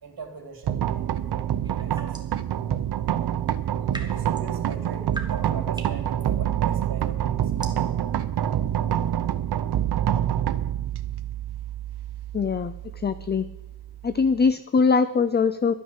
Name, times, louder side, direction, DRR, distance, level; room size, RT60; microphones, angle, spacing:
voice 1, 0.0-1.5 1.8-2.2 4.0-7.6, right 5 dB, 65° right, 4 dB, 3.0 m, -41 dB
sound 1, 0.6-14.5, right 10 dB, 85° right, 0.8 m, -27 dB
sound 2, 1.6-2.4 3.5-11.2, right 2 dB, 10° right, 1.6 m, -44 dB
voice 2, 12.3-13.5 14.0-15.7, left 5 dB, 25° left, 14 dB, 0.4 m, -22 dB
12.0 x 9.4 x 7.2 m, 0.94 s
wide cardioid pair, 115°, 39 cm